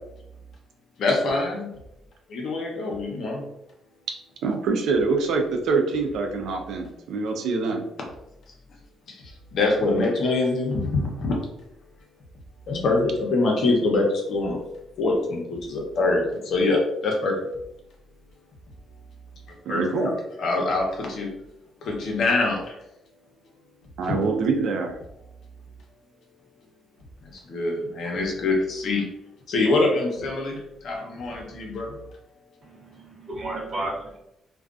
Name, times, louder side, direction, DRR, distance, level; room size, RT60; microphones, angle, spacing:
voice 1, 1.0-1.7 2.3-3.4 9.1-9.2 9.5-11.3 12.7-14.6 15.0-17.4 19.7-20.1 20.4-21.3 21.8-22.8 24.0-24.2 27.5-29.1 29.5-32.0, left 2 dB, 65° left, 0 dB, 0.7 m, -24 dB
voice 2, 4.4-7.9 19.7-20.1 24.0-24.9, right 4 dB, 75° right, 4 dB, 0.4 m, -25 dB
voice 3, 32.6-34.2, right 2 dB, 50° right, -2 dB, 0.8 m, -33 dB
2.4 x 2.2 x 2.4 m, 0.83 s
cardioid pair, 90°, 0 cm